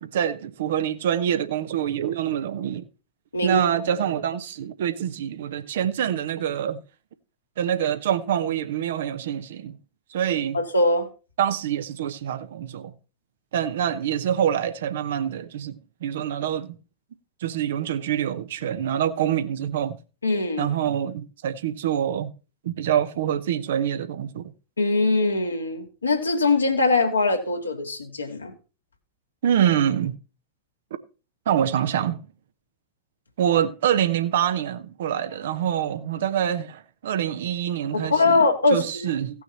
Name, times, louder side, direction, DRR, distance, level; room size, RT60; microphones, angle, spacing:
voice 1, 0.0-2.9 3.4-6.8 7.6-9.8 10.1-10.6 11.4-12.9 13.5-16.8 17.4-20.0 20.6-22.3 22.6-24.4 29.4-30.2 31.5-32.2 33.4-38.4 38.7-39.4, right 9 dB, 60° right, 0.9 m, -25 dB
voice 2, 10.5-11.1 20.2-20.7 24.8-28.5 37.9-39.1, left 3 dB, 80° left, 1.9 m, -22 dB
16.5 x 6.2 x 4.2 m
figure-of-eight pair, 90°, 0 cm